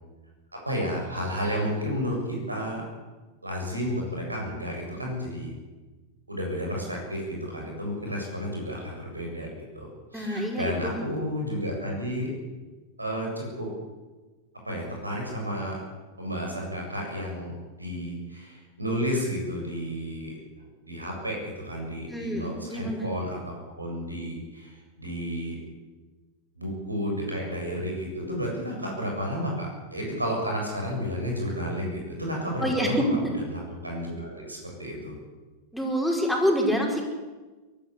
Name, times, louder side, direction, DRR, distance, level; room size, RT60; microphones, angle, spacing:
voice 1, 0.6-2.8 3.4-5.5 6.3-12.3 13.0-13.7 14.6-15.7 16.2-17.5 17.8-20.3 20.8-25.6 26.5-35.1, equal, 85° right, 0 dB, 7.6 m, -32 dB
voice 2, 10.1-10.9 22.1-23.0 32.6-33.3 35.7-37.0, equal, ahead, 0 dB, 5.2 m, -26 dB
23.0 x 14.0 x 8.4 m, 1.2 s
figure-of-eight pair, 90°, 0 cm